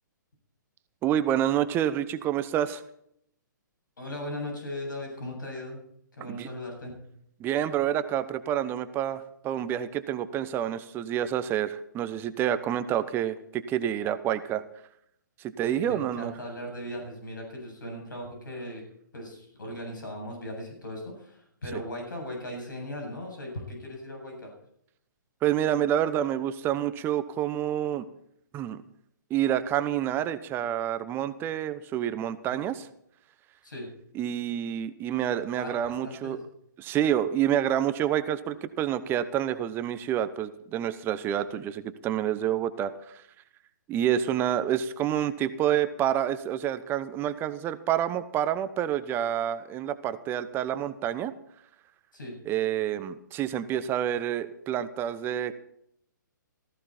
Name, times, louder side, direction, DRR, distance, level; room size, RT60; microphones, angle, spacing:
voice 1, 1.0-2.8 6.3-6.5 7.4-14.6 15.6-16.3 25.4-28.0 28.5-28.8 29.3-32.7 34.2-36.4 36.8-43.2 43.9-51.3 52.5-55.5, right 10 dB, 20° right, 12 dB, 0.9 m, -28 dB
voice 2, 4.0-5.8 6.2-6.9 15.6-18.8 19.1-24.5 32.5-32.6 33.6-33.9 35.5-36.4 52.1-52.3, left 1 dB, 75° left, 1 dB, 7.7 m, -38 dB
18.0 x 15.0 x 4.4 m, 0.72 s
figure-of-eight pair, 125°, 11 cm